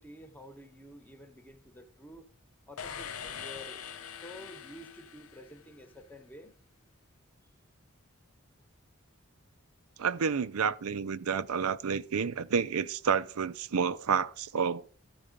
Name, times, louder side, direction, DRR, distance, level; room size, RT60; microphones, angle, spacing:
voice 1, 0.0-2.3 2.7-3.8 4.1-6.5, equal, 10° left, 1.0 m, -50 dB
sound 1, 2.8-5.9, left 8 dB, 80° left, 0.7 m, -43 dB
voice 2, 10.0-14.9, right 6 dB, 85° right, 0.5 m, -30 dB
14.0 x 4.8 x 5.2 m
head